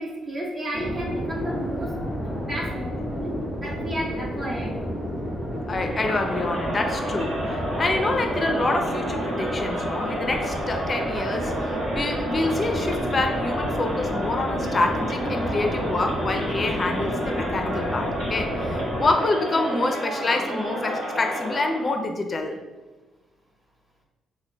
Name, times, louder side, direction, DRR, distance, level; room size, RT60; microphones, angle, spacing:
voice 1, 0.0-1.9 2.3-2.7 3.0-3.3 3.6-4.7, right 1 dB, 35° right, -4 dB, 1.4 m, -31 dB
sound 1, 0.7-19.1, equal, 10° right, 1.4 m, -31 dB
voice 2, 5.7-22.6, left 2 dB, 35° left, 4 dB, 0.5 m, -27 dB
Crowd, 5.7-22.0, right 1 dB, 75° right, 0.9 m, -31 dB
6.0 x 2.2 x 2.2 m, 1.2 s
cardioid pair, 90°, 0 cm